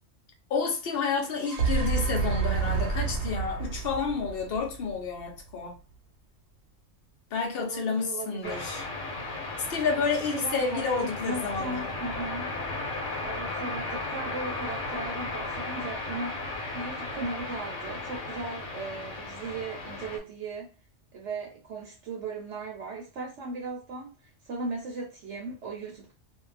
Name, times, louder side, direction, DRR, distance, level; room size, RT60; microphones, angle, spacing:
voice 1, 0.5-5.8 7.3-8.8 9.6-11.9, left 5 dB, 55° left, 0.9 m, -30 dB
sound 1, 1.2-5.4, right 5 dB, 90° right, 1.1 m, -29 dB
voice 2, 7.6-8.7 10.3-12.5 13.2-20.7 21.1-26.1, right 3 dB, 65° right, 0.9 m, -37 dB
sound 2, 8.4-20.2, left 2 dB, 75° left, 1.2 m, -35 dB
2.5 x 2.2 x 3.2 m
omnidirectional pair, 1.3 m